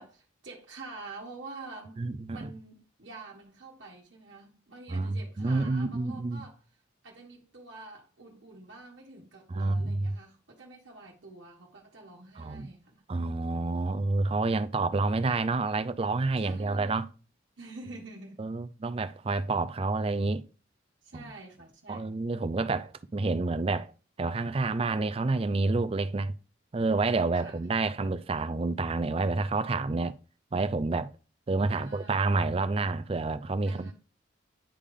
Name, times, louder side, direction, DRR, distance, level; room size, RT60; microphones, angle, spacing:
voice 1, 0.0-2.0 2.3-6.6 7.0-13.0 16.4-17.1 17.6-18.5 21.0-22.1 27.3-27.6 31.7-32.3 33.6-33.9, right 3 dB, 70° right, 1.2 m, -47 dB
voice 2, 2.0-2.5 4.9-6.4 9.5-10.1 12.4-12.7 13.1-17.1 18.4-20.4 21.1-21.2 21.9-23.9 24.2-26.3 26.7-30.2 30.5-31.1 31.5-33.9, right 3 dB, 30° right, 0.4 m, -29 dB
10.0 x 3.4 x 3.6 m
head